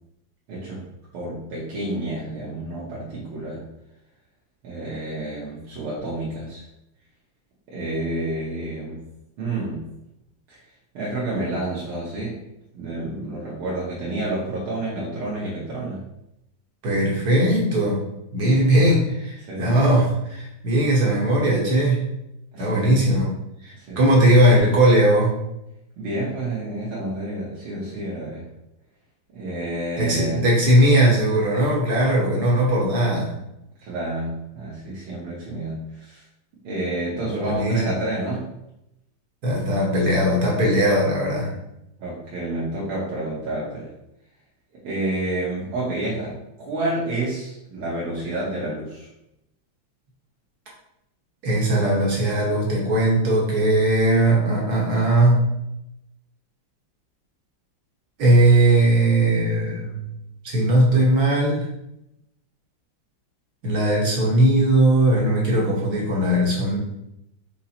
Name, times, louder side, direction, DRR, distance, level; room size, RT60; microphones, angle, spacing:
voice 1, 0.5-0.8 1.1-3.6 4.6-6.6 7.7-9.0 9.4-9.9 10.5-10.6 10.9-12.4 12.7-16.0 19.5-19.9 22.5-23.1 23.7-24.0 26.0-28.5 29.3-30.5 33.8-36.2 36.6-38.5 42.0-43.9 44.7-49.1, right 2 dB, 85° right, -6 dB, 1.9 m, -29 dB
voice 2, 16.8-18.0 18.3-22.1 22.6-23.3 23.6-25.4 30.0-33.3 37.3-37.8 39.4-41.5 51.4-55.6 58.2-60.0 60.4-61.7 63.6-66.8, right 1 dB, 55° right, -3 dB, 1.4 m, -19 dB
5.4 x 2.0 x 4.2 m, 0.85 s
omnidirectional pair, 2.2 m